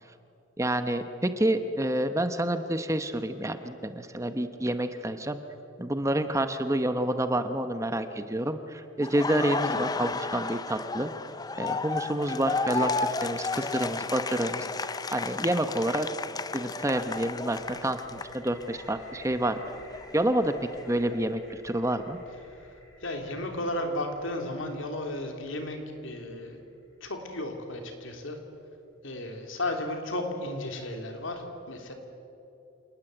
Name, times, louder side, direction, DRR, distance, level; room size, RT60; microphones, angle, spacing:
voice 1, 0.6-5.4 5.8-11.1 11.5-16.1 16.5-19.6 20.1-20.5 20.9-22.2, right 1 dB, 15° right, 9 dB, 0.9 m, -28 dB
Laughter, 9.0-18.8 19.2-21.2, left 4 dB, 20° left, 0.5 m, -33 dB
sound 1, 16.9-28.7, left 1 dB, 55° left, 5.0 m, -56 dB
voice 2, 23.0-26.6 27.0-28.4 29.0-31.9, left 1 dB, 75° left, 4 dB, 3.3 m, -34 dB
28.0 x 19.0 x 7.9 m, 2.9 s
head